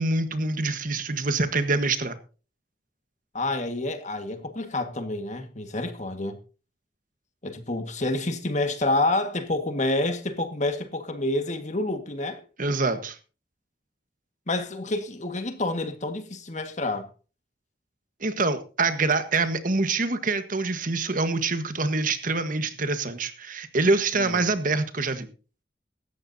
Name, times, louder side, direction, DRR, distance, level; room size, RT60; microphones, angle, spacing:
voice 1, 0.0-2.2 12.6-13.2 18.2-25.3, right 3 dB, 50° right, 1.4 m, -25 dB
voice 2, 3.3-6.4 7.4-12.4 14.5-17.1 24.2-24.5, left 2 dB, 40° left, 1.7 m, -28 dB
16.5 x 13.5 x 2.8 m
head